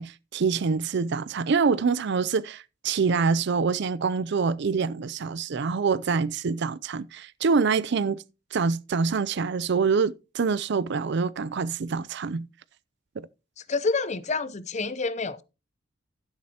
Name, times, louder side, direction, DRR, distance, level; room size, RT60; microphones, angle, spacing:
voice 1, 0.0-8.2 8.5-12.5, right 5 dB, 60° right, 0.5 m, -25 dB
voice 2, 13.7-15.4, left 4 dB, 35° left, 0.6 m, -28 dB
11.5 x 10.5 x 2.9 m
head